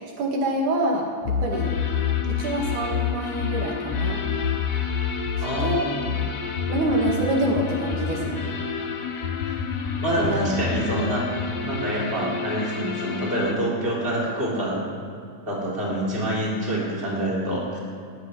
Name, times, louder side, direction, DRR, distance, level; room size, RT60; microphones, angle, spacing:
voice 1, 0.0-1.7 2.3-4.2 5.6-5.8 6.1-6.3 6.7-8.6 10.2-10.4, right 1 dB, 90° right, 0 dB, 3.3 m, -26 dB
sound 1, 1.3-8.5 9.2-11.7, left 8 dB, 70° left, 1.7 m, -28 dB
sound 2, 1.5-13.5, left 4 dB, 90° left, 0.8 m, -32 dB
voice 2, 5.4-6.1 10.0-11.3 11.6-14.8 15.5-17.8, right 1 dB, 20° right, -4 dB, 3.5 m, -26 dB
18.5 x 6.1 x 9.9 m, 2.4 s
omnidirectional pair, 3.4 m